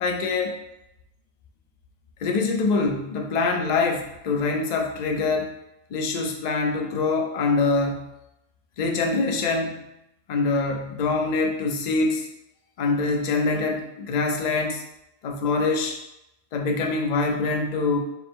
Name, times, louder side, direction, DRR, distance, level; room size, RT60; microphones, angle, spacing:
voice 1, 0.0-0.6 2.2-5.5 5.9-8.0 8.8-9.8 10.3-12.3 12.8-14.8 15.2-16.0 16.5-18.0, left 3 dB, 60° left, 3 dB, 0.4 m, -24 dB
4.7 x 2.0 x 3.6 m, 0.86 s
omnidirectional pair, 1.3 m